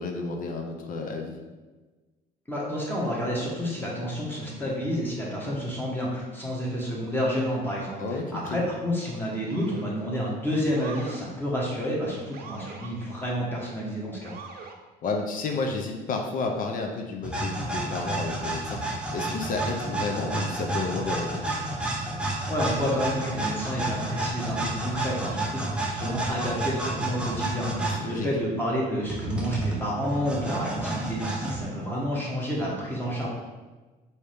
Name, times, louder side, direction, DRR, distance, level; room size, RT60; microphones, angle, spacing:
voice 1, 0.0-1.3 8.0-8.3 8.5-8.6 15.0-21.4 27.8-28.3, left 4 dB, 55° left, 3 dB, 0.6 m, -31 dB
voice 2, 2.5-14.4 22.5-33.3, equal, 10° left, -5 dB, 1.3 m, -29 dB
Motor vehicle (road) / Siren, 7.6-8.0 9.4-10.0 10.7-11.2 12.3-12.9 14.2-14.8, right 5 dB, 65° right, 0.6 m, -43 dB
sound 1, 17.2-28.0 29.0-31.6, right 2 dB, 5° right, 0.7 m, -30 dB
4.7 x 2.8 x 3.4 m, 1.3 s
cardioid pair, 110°, 17 cm